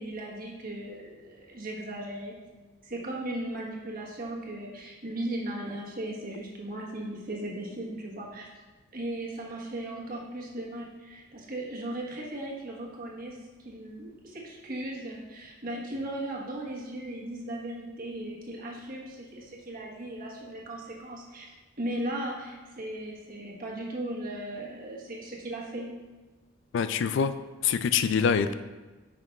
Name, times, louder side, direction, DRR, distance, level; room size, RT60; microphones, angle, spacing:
voice 1, 0.0-2.4 2.8-8.5 8.9-25.9, right 1 dB, 50° right, -2 dB, 1.3 m, -37 dB
voice 2, 26.7-27.3 27.6-28.5, left 6 dB, 65° left, 11 dB, 0.3 m, -25 dB
9.1 x 5.8 x 2.4 m, 1.3 s
head